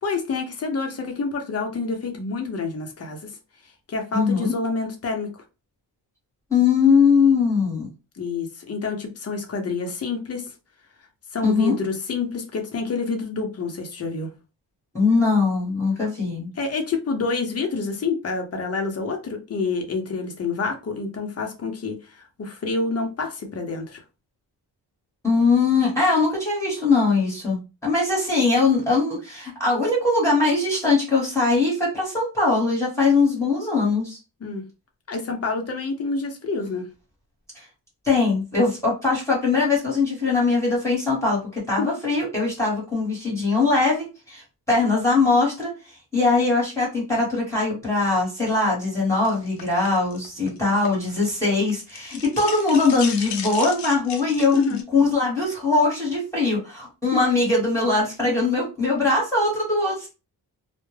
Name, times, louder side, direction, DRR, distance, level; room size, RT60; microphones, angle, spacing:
voice 1, 0.0-3.3 3.9-5.3 8.2-10.4 11.3-14.3 16.6-24.0 34.4-34.7 35.1-36.9 41.8-41.9 54.5-54.8 57.1-57.2, left 4 dB, 35° left, 0.6 m, -28 dB
voice 2, 4.1-4.5 6.5-7.9 11.4-11.7 14.9-16.5 25.2-34.2 37.5-37.6 38.0-45.7 46.1-60.1, left 3 dB, 5° left, 1.1 m, -21 dB
sound 1, 49.3-51.4 51.7-54.8, left 6 dB, 75° left, 0.6 m, -35 dB
2.2 x 2.1 x 3.2 m
wide cardioid pair, 130°, 41 cm